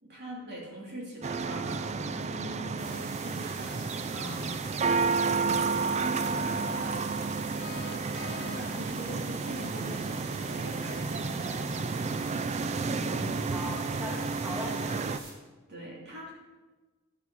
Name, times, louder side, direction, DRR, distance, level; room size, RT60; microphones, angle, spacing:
voice 1, 0.0-4.6 5.2-7.0 8.1-11.7 15.7-16.3, right 1 dB, 55° right, -3 dB, 3.1 m, -42 dB
sound 1, 1.2-15.2, right 4 dB, 30° right, 0.4 m, -31 dB
sound 2, 2.8-15.3, right 2 dB, 80° right, 3.1 m, -46 dB
sound 3, 7.6-9.0, left 6 dB, 55° left, 0.5 m, -45 dB
voice 2, 12.9-15.1, left 1 dB, 10° right, -3 dB, 1.5 m, -39 dB
10.5 x 9.2 x 4.1 m, 1.3 s
head